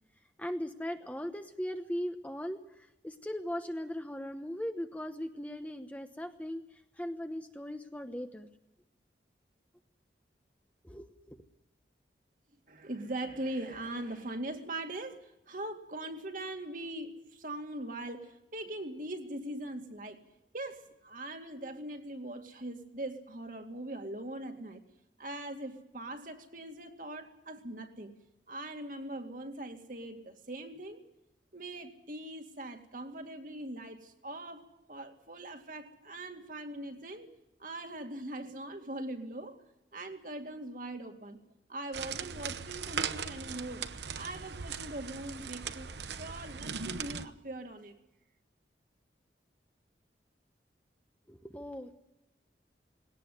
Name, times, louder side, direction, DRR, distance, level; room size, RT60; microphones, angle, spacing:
voice 1, 0.4-8.5 10.8-11.4 51.3-51.9, equal, 10° left, 7 dB, 1.0 m, -39 dB
voice 2, 12.7-20.2 20.5-24.8 25.2-28.1 28.5-31.0 31.5-37.3 37.6-39.6 39.9-41.4 41.7-43.8 44.1-47.9, right 1 dB, 45° right, 5 dB, 2.2 m, -41 dB
sound 1, 41.9-47.3, right 6 dB, 70° right, 1.0 m, -39 dB
20.5 x 17.5 x 9.4 m, 0.90 s
head